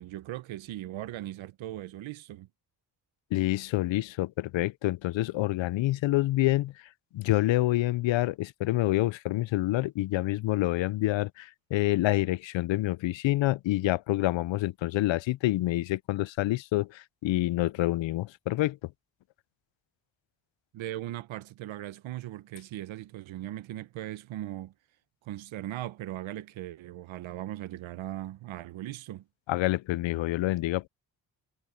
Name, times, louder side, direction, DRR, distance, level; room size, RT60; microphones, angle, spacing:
voice 1, 0.0-2.5 20.7-24.7 25.2-29.2, right 14 dB, 90° right, 1.0 m, -39 dB
voice 2, 3.3-6.7 7.1-18.9 29.5-30.9, left 17 dB, 75° left, 0.6 m, -27 dB
cardioid pair, 75°, 46 cm